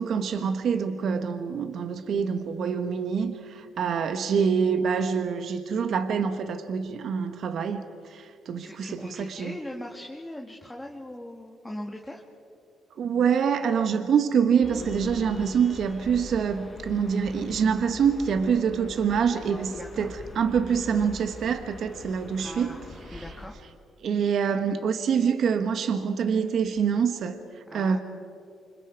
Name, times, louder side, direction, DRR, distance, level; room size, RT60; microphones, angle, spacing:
voice 1, 0.0-9.6 13.0-22.8 23.1-23.2 24.0-28.0, right 6 dB, 65° right, 1.2 m, -26 dB
voice 2, 8.6-12.2 19.7-20.1 22.4-22.8 23.1-23.5 27.7-28.0, left 1 dB, 10° left, 2.1 m, -40 dB
sound 1, 14.6-23.5, left 2 dB, 35° left, 4.3 m, -43 dB
29.0 x 26.0 x 4.7 m
cardioid pair, 90°, 0 cm